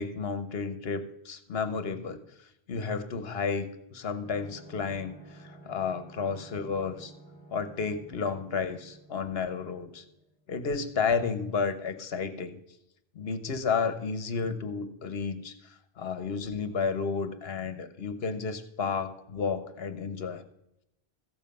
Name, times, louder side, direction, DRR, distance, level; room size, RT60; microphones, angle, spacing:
voice 1, 0.0-7.1 7.5-10.0 10.5-12.6 13.1-20.4, left 5 dB, 70° left, 11 dB, 1.1 m, -32 dB
sound 1, 4.2-10.5, right 2 dB, 15° left, 3.0 m, -52 dB
14.5 x 7.3 x 5.4 m, 0.83 s
omnidirectional pair, 1.1 m